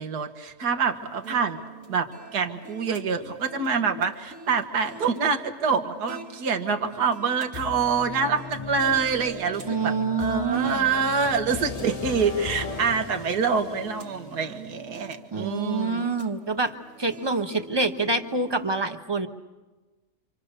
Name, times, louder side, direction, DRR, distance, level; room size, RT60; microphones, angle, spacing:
voice 1, 0.0-1.6 1.9-16.1, right 5 dB, 80° right, 7 dB, 1.9 m, -26 dB
sound 1, 0.9-18.7, right 3 dB, 55° right, 1.9 m, -46 dB
sound 2, 7.5-15.4, left 4 dB, 30° left, 0.8 m, -38 dB
voice 2, 9.6-10.9 15.3-19.3, right 3 dB, 20° right, 5 dB, 1.1 m, -26 dB
27.5 x 27.0 x 6.7 m, 1.2 s
omnidirectional pair, 1.7 m